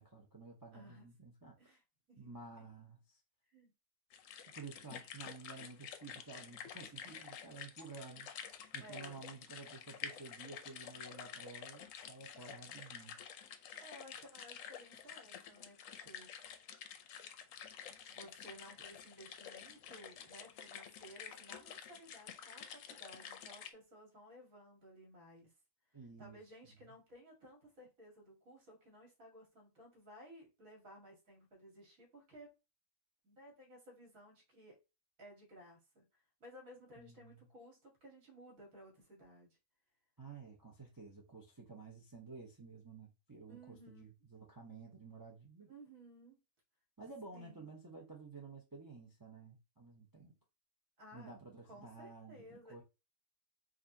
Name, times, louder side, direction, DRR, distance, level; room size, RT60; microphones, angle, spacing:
voice 1, 0.0-1.6 2.2-3.2 4.5-8.3 8.7-13.2 25.9-26.4 37.0-37.5 40.2-45.7 47.0-50.4 51.1-52.8, right 4 dB, 20° right, 0.5 m, -52 dB
voice 2, 0.7-1.1 1.6-1.8 2.1-2.3 3.5-3.7 8.8-9.2 13.6-16.3 18.1-25.5 26.2-32.5 33.2-34.8 35.2-36.1 36.4-39.6 43.5-44.0 45.6-46.4 47.3-47.7 51.0-51.3 51.7-52.8, equal, 60° right, 2.1 m, -57 dB
sound 1, 4.1-23.7, left 8 dB, 65° left, 0.9 m, -50 dB
5.0 x 2.6 x 2.7 m
omnidirectional pair, 1.6 m